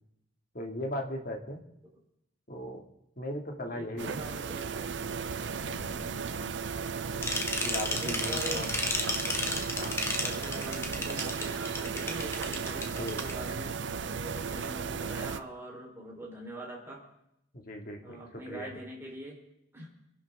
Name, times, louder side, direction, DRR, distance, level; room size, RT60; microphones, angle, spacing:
voice 1, 0.5-1.6 2.5-2.8 3.2-4.2 5.6-6.0 7.1-7.4 7.6-8.6 9.8-10.1 12.9-13.2 17.5-18.7, left 1 dB, 45° left, 2 dB, 2.2 m, -38 dB
voice 2, 3.7-5.2 5.9-6.5 7.9-9.1 10.1-17.0 18.0-19.4 19.7-19.9, right 1 dB, 10° right, -2 dB, 3.9 m, -44 dB
sound 1, 4.0-15.4, right 5 dB, 65° right, 0.6 m, -35 dB
sound 2, 7.2-13.3, left 2 dB, 15° left, 1.4 m, -32 dB
26.5 x 11.5 x 3.6 m, 0.79 s
head